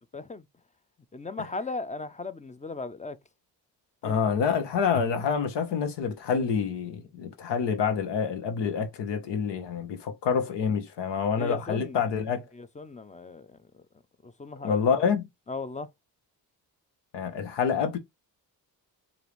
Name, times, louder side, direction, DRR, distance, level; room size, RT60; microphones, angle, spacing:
voice 1, 0.1-0.5 1.1-3.2 4.1-4.3 11.4-12.1 12.5-13.8 14.2-14.9 15.5-15.9, left 3 dB, 15° left, 0.6 m, -37 dB
voice 2, 4.0-12.4 14.6-15.3 17.1-18.0, left 6 dB, 75° left, 0.9 m, -27 dB
4.8 x 2.7 x 3.1 m
supercardioid pair, 45°, 42 cm